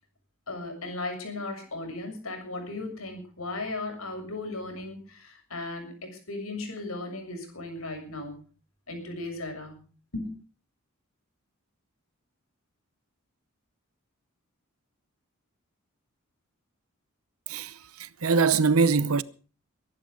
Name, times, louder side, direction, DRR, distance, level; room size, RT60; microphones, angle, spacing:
voice 1, 0.5-8.4 8.9-9.9 10.1-10.3, left 2 dB, 75° left, 6.9 m, -36 dB
voice 2, 17.5-19.2, right 4 dB, 80° right, 0.9 m, -23 dB
22.5 x 11.0 x 5.3 m
head